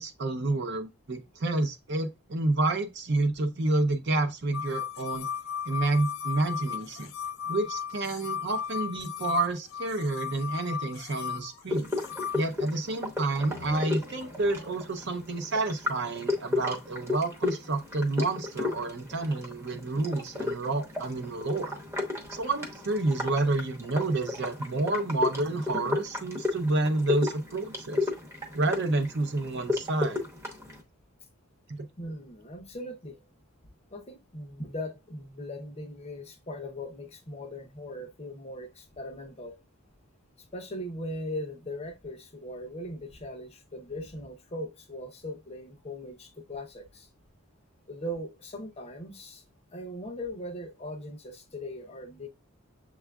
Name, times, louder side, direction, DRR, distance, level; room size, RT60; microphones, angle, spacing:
voice 1, 0.0-5.3 5.7-7.1 7.5-11.9 12.3-21.8 22.3-28.1 28.5-30.2 31.7-31.9, right 2 dB, 50° right, 0.6 m, -29 dB
sound 1, 4.5-12.4, left 8 dB, 65° left, 0.3 m, -36 dB
sound 2, 11.7-30.8, left 3 dB, 10° right, 0.8 m, -34 dB
sound 3, 13.2-16.8, equal, 75° right, 1.1 m, -49 dB
voice 2, 32.0-33.2 33.9-39.6 40.5-47.1 47.9-49.4 49.7-52.3, left 1 dB, 30° left, 0.6 m, -39 dB
7.0 x 2.3 x 2.2 m
head